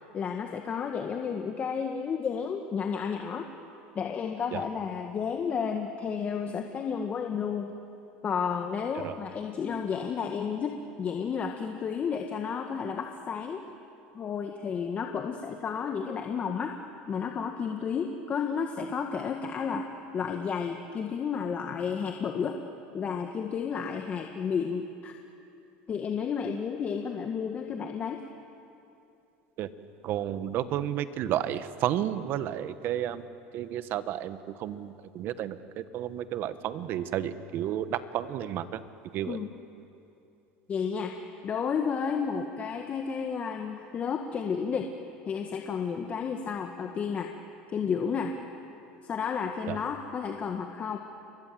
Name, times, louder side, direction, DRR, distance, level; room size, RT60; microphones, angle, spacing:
voice 1, 0.1-3.5 3.9-7.7 8.2-13.6 14.1-16.7 17.1-19.9 20.1-22.6 22.9-25.1 25.9-28.2 39.3-39.5 40.7-41.1 41.4-44.9 45.2-47.3 47.7-48.3 49.0-51.0, left 6 dB, 35° left, 3 dB, 1.8 m, -32 dB
voice 2, 30.0-33.2 33.5-38.8 39.1-39.4 49.7-49.8, right 11 dB, 50° right, 12 dB, 1.4 m, -32 dB
29.5 x 23.0 x 7.8 m, 2.7 s
supercardioid pair, 110°, 4 cm